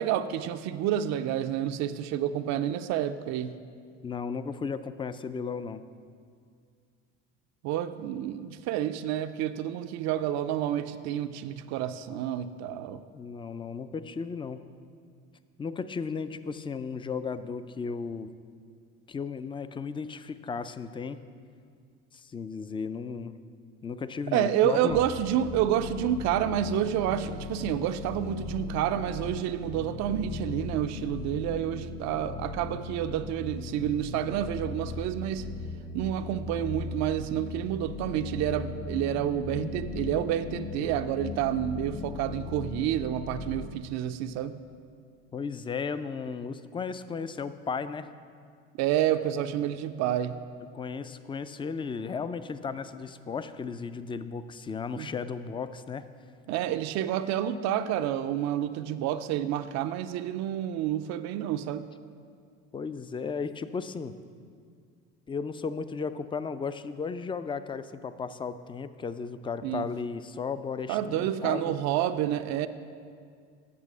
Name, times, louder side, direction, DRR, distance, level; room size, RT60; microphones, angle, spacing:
voice 1, 0.0-3.5 7.6-13.0 24.3-35.5 35.9-44.6 48.8-50.4 54.9-55.1 56.5-61.9 69.6-69.9 70.9-72.7, right 11 dB, 65° right, 10 dB, 0.5 m, -29 dB
voice 2, 4.0-5.8 13.1-14.6 15.6-18.3 19.1-21.2 22.1-23.3 23.8-25.1 45.3-48.1 50.7-56.1 62.7-64.1 65.3-71.7, left 5 dB, 15° left, 13 dB, 0.4 m, -35 dB
sound 1, 24.9-43.7, left 4 dB, 55° left, 0.9 m, -38 dB
8.5 x 6.4 x 6.1 m, 2.2 s
supercardioid pair, 85°, 29 cm